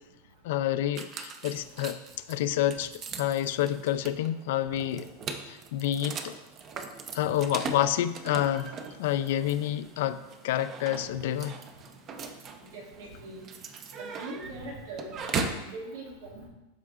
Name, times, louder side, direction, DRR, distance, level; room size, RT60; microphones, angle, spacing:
voice 1, 0.4-2.0 2.3-2.9 3.2-5.1 5.5-6.3 7.1-8.7 9.0-11.6, left 12 dB, 70° left, 12 dB, 0.4 m, -28 dB
sound 1, 0.9-15.7, right 4 dB, 30° right, 0.6 m, -39 dB
voice 2, 12.7-13.5 14.0-16.5, right 2 dB, 90° right, -2 dB, 2.1 m, -41 dB
12.0 x 4.8 x 2.4 m, 1.0 s
supercardioid pair, 150°, 0 cm